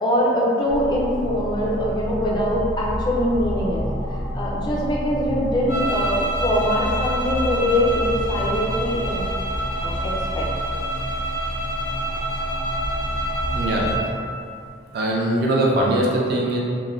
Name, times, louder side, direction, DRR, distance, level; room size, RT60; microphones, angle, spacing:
voice 1, 0.0-3.8 4.1-9.3 9.8-10.5, left 1 dB, 20° left, -4 dB, 0.3 m, -23 dB
sound 1, 0.7-14.0, equal, 60° left, 0.6 m, -29 dB
sound 2, 5.7-14.1, right 1 dB, 75° left, 1.0 m, -28 dB
voice 2, 13.5-13.9 14.9-16.6, right 1 dB, 55° right, -3 dB, 0.3 m, -21 dB
3.0 x 2.1 x 2.4 m, 2.3 s
head